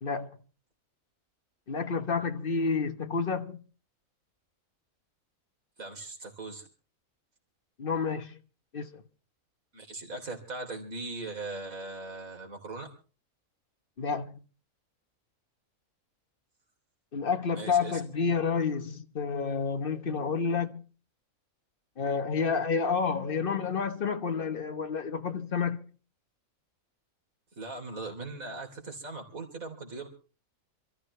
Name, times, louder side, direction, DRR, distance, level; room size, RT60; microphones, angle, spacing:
voice 1, 1.7-3.6 7.8-8.4 8.7-9.0 14.0-14.4 17.1-20.8 22.0-25.8, left 5 dB, 40° left, 1.3 m, -29 dB
voice 2, 5.8-6.7 9.7-12.9 17.5-18.0 27.6-30.1, right 3 dB, 75° right, 3.9 m, -39 dB
27.0 x 14.0 x 3.2 m
omnidirectional pair, 1.5 m